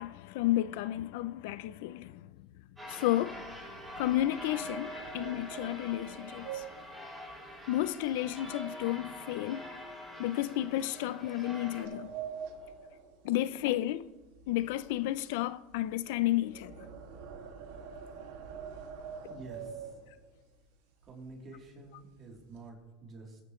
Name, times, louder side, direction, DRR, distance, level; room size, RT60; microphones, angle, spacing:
voice 1, 0.0-2.2 2.9-3.5 4.0-6.6 7.7-9.7 10.2-12.1 13.2-14.1 14.5-16.9, left 14 dB, 65° left, 0.5 m, -32 dB
sound 1, 2.8-11.8, equal, 10° right, 4.7 m, -45 dB
sound 2, 3.1-8.5 8.8-9.1 9.6-9.8 10.6-13.9 14.2-20.4 21.0-21.1 21.4-21.7 22.0-22.7, right 7 dB, 70° right, 2.1 m, -46 dB
voice 2, 19.3-19.9 21.0-23.4, right 3 dB, 30° right, 3.3 m, -48 dB
22.0 x 11.0 x 3.2 m
supercardioid pair, 150°, 0 cm